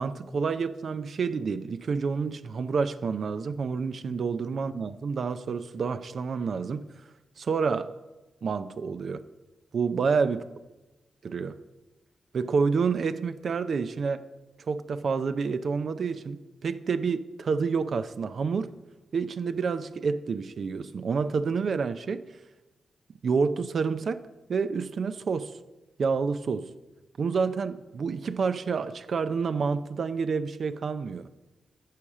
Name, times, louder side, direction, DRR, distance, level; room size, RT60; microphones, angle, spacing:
voice 1, 0.0-6.8 7.4-7.9 8.4-9.2 9.7-10.4 11.2-11.6 12.3-14.2 14.7-18.7 19.1-22.2 23.2-24.2 24.5-25.5 26.0-26.7 27.2-31.3, right 5 dB, 65° right, 11 dB, 0.5 m, -28 dB
10.0 x 4.9 x 7.3 m, 1.1 s
cardioid pair, 65°, 0 cm